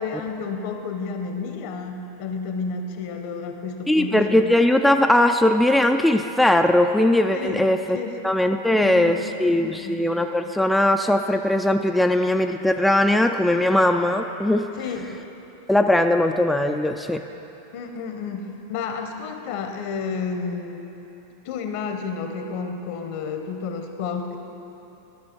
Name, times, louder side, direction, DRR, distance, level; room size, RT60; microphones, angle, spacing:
voice 1, 0.0-4.5 7.3-7.6 7.9-8.1 8.8-10.0 14.8-15.1 17.7-20.8 21.4-24.4, left 5 dB, 60° left, 5 dB, 1.0 m, -31 dB
voice 2, 3.9-8.0 8.2-14.7 15.7-17.2, left 1 dB, 5° left, 4 dB, 0.4 m, -19 dB
13.0 x 6.1 x 4.5 m, 3.0 s
hypercardioid pair, 100°, 0 cm